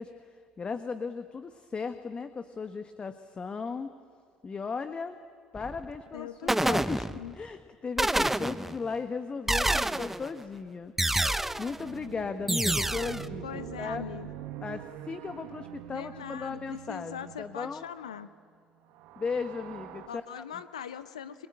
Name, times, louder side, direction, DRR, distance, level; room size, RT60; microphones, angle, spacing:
voice 1, 0.0-3.9 4.4-5.2 5.5-7.0 7.3-14.0 14.6-17.8 19.2-20.4, left 5 dB, 35° left, 9 dB, 1.2 m, -36 dB
sound 1, 5.5-6.0 6.5-7.5 8.0-8.9 9.5-10.3 11.0-11.8 12.5-13.3, right 1 dB, 10° right, 0.8 m, -28 dB
voice 2, 6.1-7.3 13.4-14.3 15.9-18.3 20.1-21.5, left 9 dB, 85° left, 13 dB, 0.7 m, -41 dB
sound 2, 11.8-17.8 18.8-20.1, right 11 dB, 70° right, 1.4 m, -44 dB
29.5 x 21.5 x 8.8 m, 2.2 s
hypercardioid pair, 55°, 3 cm